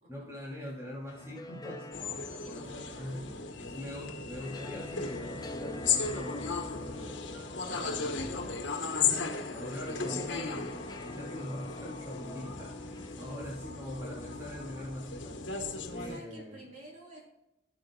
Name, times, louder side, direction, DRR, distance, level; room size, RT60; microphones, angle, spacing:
voice 1, 0.1-1.9 2.4-3.3 3.6-7.2 7.6-8.7 9.2-10.7 11.0-15.4 15.9-16.6, left 1 dB, 15° right, -5 dB, 3.3 m, -43 dB
sound 1, 0.9-16.1, left 2 dB, 20° left, 0.7 m, -48 dB
sound 2, 1.9-16.2, left 5 dB, 85° left, 1.3 m, -36 dB
voice 2, 1.9-3.1 13.2-13.6 15.9-17.3, right 1 dB, 40° right, -3 dB, 3.7 m, -51 dB
17.0 x 7.9 x 2.4 m, 0.86 s
head